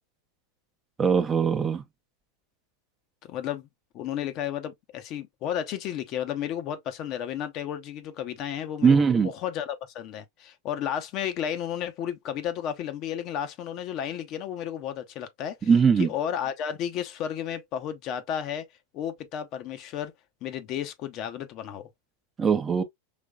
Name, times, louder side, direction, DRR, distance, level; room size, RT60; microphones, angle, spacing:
voice 1, 1.0-1.8 8.8-9.3 15.7-16.1 22.4-22.8, right 6 dB, 20° right, 0.6 m, -21 dB
voice 2, 3.2-3.7 3.9-15.7 16.0-18.6 18.9-20.1 20.4-21.9, left 9 dB, 45° left, 0.8 m, -33 dB
5.1 x 3.1 x 2.3 m
hypercardioid pair, 95°, 0 cm